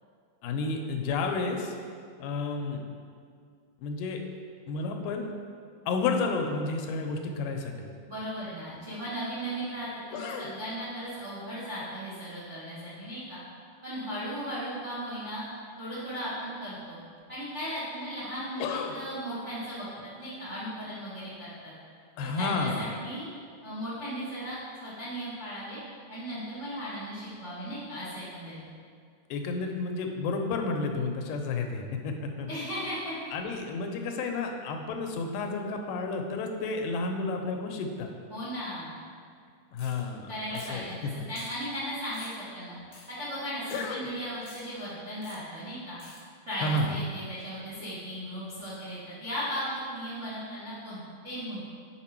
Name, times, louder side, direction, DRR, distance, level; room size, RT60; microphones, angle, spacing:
voice 1, 0.4-1.8 2.2-2.8 3.8-4.2 4.7-5.3 5.9-7.9 10.1-10.5 18.6-19.0 22.2-22.9 29.3-32.5 33.3-38.1 39.7-41.1 43.7-44.1 46.6-47.0, left 3 dB, 90° left, 4 dB, 2.2 m, -31 dB
voice 2, 8.0-13.4 13.8-15.4 15.8-17.0 17.3-21.7 22.2-23.3 23.6-24.6 24.8-25.8 26.1-28.6 32.5-33.1 38.3-39.0 40.3-42.8 43.2-46.0 46.4-51.6, equal, 85° right, -10 dB, 0.6 m, -36 dB
sound 1, 39.8-40.0 40.5-40.8 41.3-41.5 42.1-42.4 42.9-43.1 43.7-43.8 44.4-44.6 45.2-45.4 46.0-46.2, left 2 dB, 60° left, 0.9 m, -49 dB
5.8 x 4.5 x 4.3 m, 2.2 s
omnidirectional pair, 3.7 m